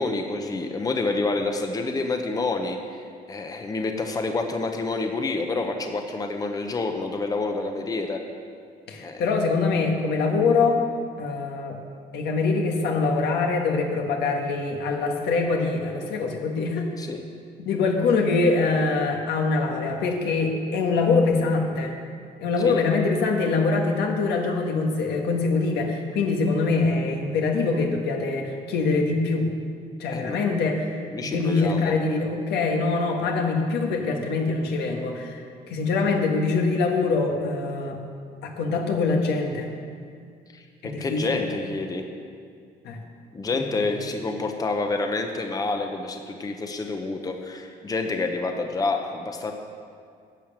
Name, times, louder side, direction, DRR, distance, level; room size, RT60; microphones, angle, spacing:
voice 1, 0.0-3.0 3.3-8.2 9.0-9.3 17.0-17.2 22.6-22.9 30.1-30.4 31.1-31.9 40.5-42.0 43.3-49.5, left 3 dB, 20° left, 4 dB, 0.9 m, -28 dB
voice 2, 8.9-10.8 11.2-11.8 12.1-16.9 17.6-21.9 22.4-29.5 30.0-35.4 35.7-38.0 38.4-39.7 40.8-41.4 42.8-43.0 43.5-43.9, left 4 dB, 75° left, 2 dB, 1.6 m, -24 dB
11.0 x 7.0 x 7.5 m, 2.2 s
cardioid pair, 110°, 17 cm